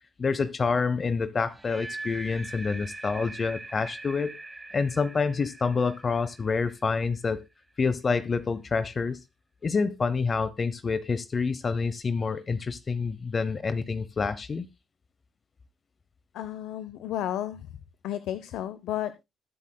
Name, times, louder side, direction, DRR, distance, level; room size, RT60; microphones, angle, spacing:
voice 1, 0.2-4.4 4.7-7.4 7.8-9.2 9.6-14.7, left 4 dB, 40° left, 0.7 m, -27 dB
sound 1, 1.4-7.5, right 2 dB, 20° right, 1.5 m, -42 dB
voice 2, 16.3-17.7 18.0-19.2, left 12 dB, 85° left, 0.7 m, -32 dB
20.5 x 7.5 x 2.2 m
cardioid pair, 90°, 0 cm